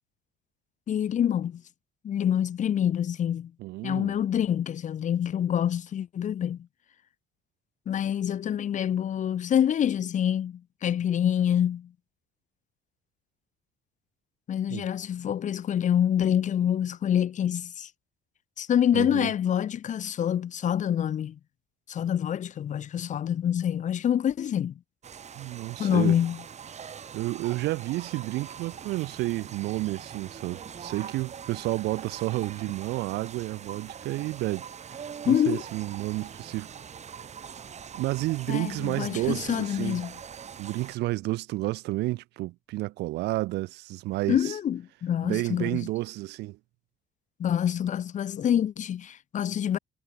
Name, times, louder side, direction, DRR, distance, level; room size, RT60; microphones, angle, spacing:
voice 1, 0.9-1.6 2.0-3.5 3.8-6.6 7.9-11.9 14.5-17.9 18.6-21.4 21.9-24.7 25.8-26.4 35.3-35.6 38.5-40.1 44.3-45.8 47.4-49.8, left 9 dB, 45° left, 1.2 m, -26 dB
voice 2, 3.6-4.1 14.7-14.9 18.9-19.3 25.3-26.2 27.1-36.7 37.9-40.0 40.6-44.5 45.2-46.6, right 19 dB, 85° right, 1.2 m, -31 dB
sound 1, 25.0-41.0, right 7 dB, 40° right, 6.9 m, -43 dB
cardioid pair, 110°, 17 cm